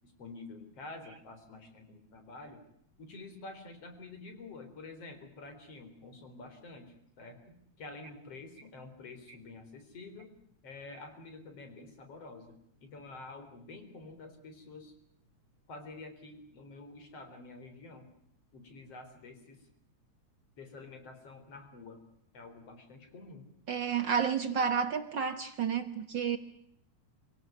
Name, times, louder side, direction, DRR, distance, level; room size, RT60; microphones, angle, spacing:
voice 1, 0.0-2.6 3.0-10.3 10.6-14.9 15.7-18.1 18.5-19.7 20.6-22.0 22.3-23.5, left 3 dB, 55° left, 5.0 m, -48 dB
voice 2, 23.7-26.4, right 7 dB, 50° right, 1.6 m, -30 dB
25.5 x 17.5 x 9.3 m
omnidirectional pair, 3.3 m